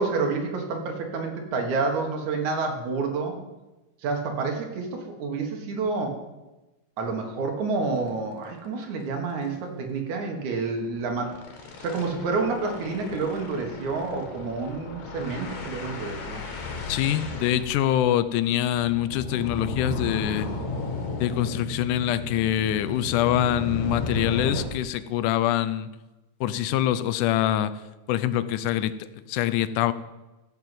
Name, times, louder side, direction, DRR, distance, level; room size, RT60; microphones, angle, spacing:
voice 1, 0.0-3.4 4.0-6.2 7.0-11.3 11.8-16.4, right 4 dB, 70° right, 3 dB, 2.9 m, -29 dB
sound 1, 8.0-8.1 8.4-8.5 8.8-9.0 9.3-9.5 10.8-24.6, left 2 dB, 60° left, 2.8 m, -34 dB
voice 2, 16.9-20.5 21.2-25.9 26.4-27.8 28.1-29.9, left 12 dB, 85° left, 13 dB, 2.1 m, -25 dB
14.5 x 5.4 x 7.6 m, 1.1 s
omnidirectional pair, 3.6 m